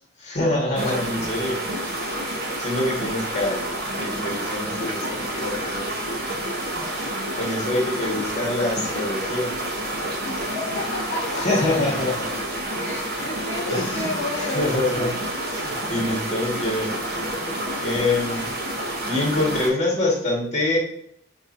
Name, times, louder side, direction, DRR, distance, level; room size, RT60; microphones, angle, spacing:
voice 1, 0.2-2.2 2.6-3.6 3.9-5.9 7.4-9.5 11.4-12.3 13.7-14.1 14.4-15.1 15.5-17.0 17.8-18.5 19.0-20.8, left 2 dB, 40° left, -3 dB, 1.8 m, -25 dB
sound 1, 0.8-19.7, right 1 dB, 55° right, 1.1 m, -29 dB
voice 2, 10.2-11.6 12.8-15.1, left 2 dB, 65° left, -3 dB, 0.9 m, -31 dB
6.4 x 3.0 x 2.7 m, 0.70 s
head